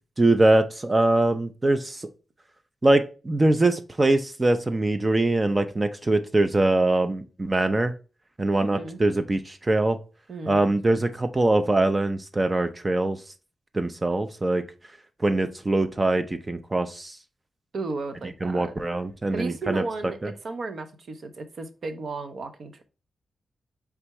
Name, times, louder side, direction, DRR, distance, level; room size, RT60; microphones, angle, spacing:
voice 1, 0.2-2.1 2.8-7.9 8.4-10.0 10.5-13.2 13.7-14.6 15.2-17.2 18.4-19.8, right 2 dB, 20° right, 8 dB, 0.4 m, -23 dB
voice 2, 8.6-9.0 10.3-10.6 17.7-18.8 19.3-22.8, right 3 dB, 60° right, 8 dB, 0.6 m, -34 dB
4.5 x 3.4 x 2.9 m, 0.34 s
wide cardioid pair, 125°, 0 cm